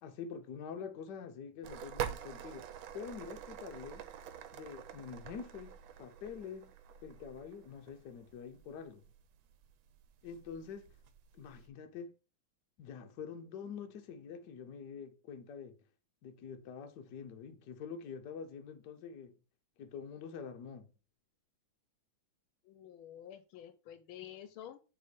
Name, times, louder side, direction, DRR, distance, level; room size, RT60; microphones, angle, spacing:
voice 1, 0.0-4.1 4.5-6.7 7.0-9.0 10.2-10.9 11.3-12.1 12.8-15.8 16.2-19.3 19.8-20.9, left 6 dB, 65° left, 1.3 m, -46 dB
sound 1, 1.6-11.7, right 9 dB, 75° right, 1.4 m, -46 dB
voice 2, 22.6-24.8, left 10 dB, 85° left, 1.5 m, -50 dB
6.7 x 3.6 x 4.9 m
omnidirectional pair, 2.3 m